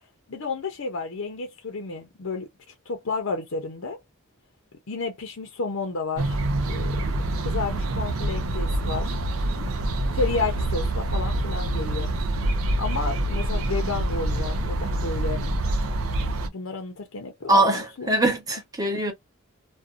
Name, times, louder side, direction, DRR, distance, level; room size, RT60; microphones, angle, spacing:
voice 1, 0.3-2.5 2.9-4.0 4.9-6.4 6.7-7.0 7.4-9.1 10.1-12.1 12.8-15.4 16.4-18.1, left 4 dB, 70° left, 0.6 m, -31 dB
sound 1, 6.2-16.5, right 1 dB, 75° right, 0.5 m, -26 dB
voice 2, 9.6-9.9 17.5-19.1, right 1 dB, 15° right, 0.9 m, -23 dB
2.6 x 2.2 x 2.4 m
head